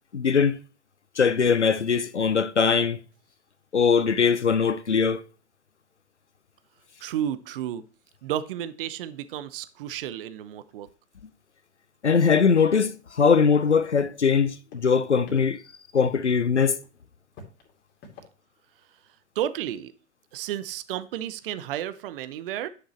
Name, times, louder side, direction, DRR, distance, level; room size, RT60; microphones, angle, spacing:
voice 1, 0.1-0.6 1.2-3.0 3.7-5.2 12.0-15.6 15.9-16.8, left 6 dB, 85° left, 0.6 m, -21 dB
voice 2, 7.0-7.8 8.2-10.9 19.3-19.9 20.3-22.7, right 11 dB, 55° right, 0.7 m, -32 dB
sound 1, 13.2-13.3 13.6-13.7 14.0-14.4 14.7-15.4 16.0-16.3 16.6-16.9 17.3-18.2, left 3 dB, 35° left, 2.6 m, -44 dB
9.8 x 6.2 x 3.1 m
figure-of-eight pair, 90°, 34 cm